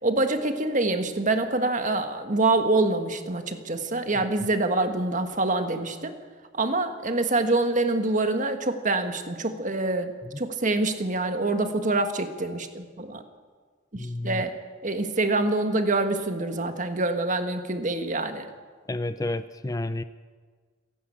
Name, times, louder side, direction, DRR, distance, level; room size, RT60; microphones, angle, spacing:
voice 1, 0.0-6.2 6.5-10.1 10.4-13.2 13.9-14.6 14.8-18.5, right 2 dB, 40° right, 7 dB, 1.7 m, -25 dB
voice 2, 13.9-14.4 18.9-20.0, left 2 dB, 20° left, 12 dB, 0.5 m, -30 dB
29.5 x 11.0 x 8.6 m, 1.5 s
head